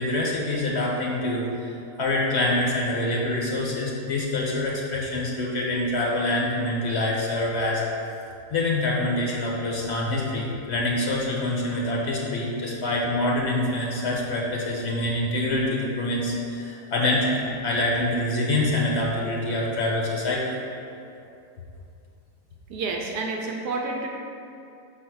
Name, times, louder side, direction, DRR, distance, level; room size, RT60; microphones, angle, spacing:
voice 1, 0.0-1.7 2.0-7.8 8.5-20.6, left 1 dB, 45° left, -3 dB, 1.3 m, -25 dB
voice 2, 22.7-24.1, right 3 dB, 80° right, 1 dB, 1.2 m, -29 dB
5.6 x 4.2 x 6.2 m, 2.6 s
omnidirectional pair, 1.8 m